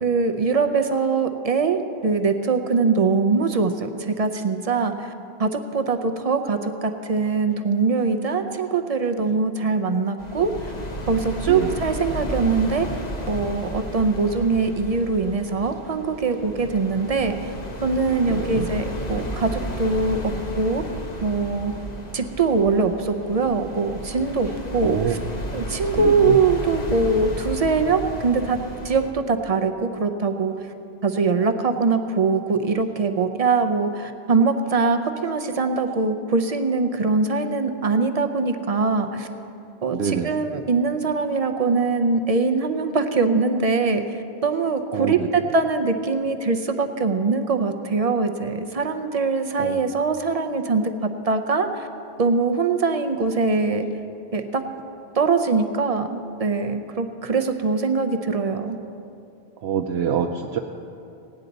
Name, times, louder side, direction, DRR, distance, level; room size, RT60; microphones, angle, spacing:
voice 1, 0.0-5.1 5.4-10.7 11.1-12.9 13.3-17.5 17.8-20.8 21.2-21.7 22.1-25.2 25.5-28.6 28.8-30.5 31.0-39.3 39.8-51.9 52.2-53.9 54.3-54.6 55.1-58.8, right 4 dB, 45° right, 6 dB, 0.6 m, -22 dB
sound 1, 10.2-29.1, equal, 40° left, 1.1 m, -33 dB
voice 2, 18.3-18.7 24.8-25.2 26.0-26.4 39.9-40.4 44.9-45.3 49.6-49.8 59.6-60.6, right 7 dB, 80° right, 3 dB, 0.8 m, -25 dB
17.5 x 9.7 x 4.0 m, 2.6 s
omnidirectional pair, 1.1 m